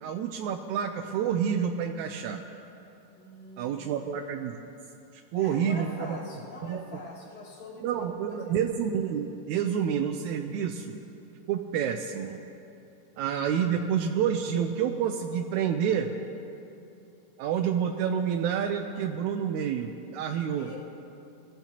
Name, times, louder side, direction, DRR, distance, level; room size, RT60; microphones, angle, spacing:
voice 1, 0.0-2.4 3.6-4.6 5.3-6.2 6.6-7.0 7.8-11.0 11.5-12.4 13.2-16.1 17.4-20.7, right 8 dB, 80° right, 4 dB, 1.8 m, -28 dB
voice 2, 3.1-4.1 5.3-8.6 20.5-20.8, left 3 dB, 55° left, -5 dB, 4.0 m, -44 dB
23.0 x 15.0 x 3.0 m, 2.7 s
omnidirectional pair, 3.9 m